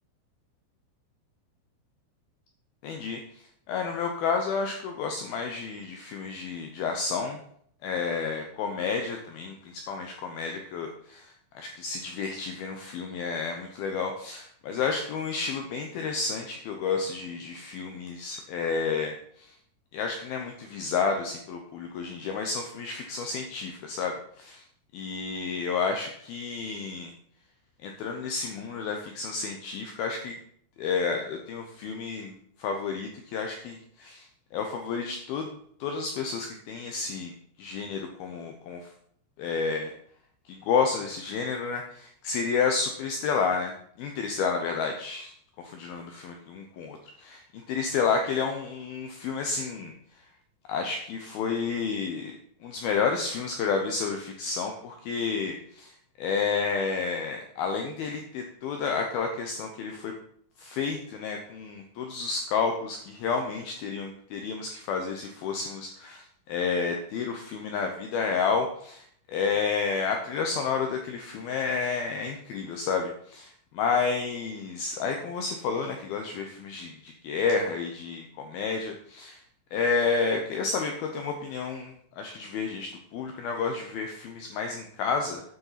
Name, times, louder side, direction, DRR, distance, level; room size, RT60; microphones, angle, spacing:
voice 1, 2.8-3.2 3.7-7.4 7.8-19.5 19.9-24.6 24.9-27.1 27.8-30.4 30.8-34.3 34.5-35.5 35.8-38.8 39.4-39.9 40.5-43.7 44.0-45.3 45.6-47.4 47.7-49.9 50.7-52.3 52.6-60.1 60.6-79.4 79.7-85.4, left 5 dB, 85° left, 4 dB, 2.1 m, -30 dB
9.6 x 7.3 x 5.7 m, 0.65 s
omnidirectional pair, 5.5 m